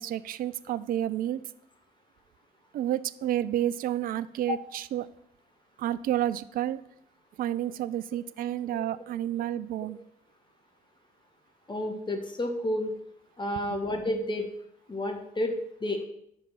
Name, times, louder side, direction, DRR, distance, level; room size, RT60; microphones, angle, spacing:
voice 1, 0.0-1.4 2.7-5.1 5.8-6.8 7.4-10.0 13.7-13.8, right 12 dB, 50° right, 16 dB, 0.4 m, -30 dB
voice 2, 11.7-12.9 13.4-14.5 14.9-15.5 15.8-16.1, left 1 dB, 25° left, 3 dB, 1.4 m, -30 dB
5.3 x 5.2 x 5.7 m, 0.74 s
figure-of-eight pair, 40°, 19 cm